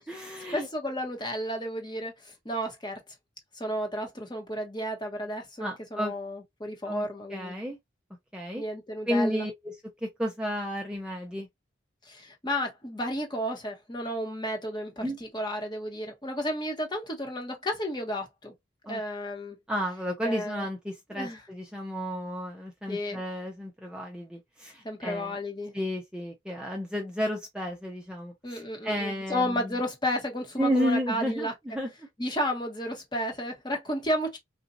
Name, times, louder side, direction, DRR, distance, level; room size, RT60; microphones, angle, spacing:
voice 1, 0.0-0.7 5.6-6.1 6.9-7.8 8.3-8.6 9.1-9.7 10.0-11.5 15.0-15.2 18.9-19.0 19.7-25.4 25.7-29.7 30.6-31.9, equal, 5° right, 0.6 m, -32 dB
voice 2, 0.5-3.0 3.5-7.6 8.5-9.5 12.0-18.5 18.9-19.6 20.2-20.7 21.1-21.4 22.9-23.2 24.8-25.7 28.4-31.5 32.2-34.4, equal, 25° left, 1.1 m, -32 dB
3.9 x 2.5 x 2.6 m
head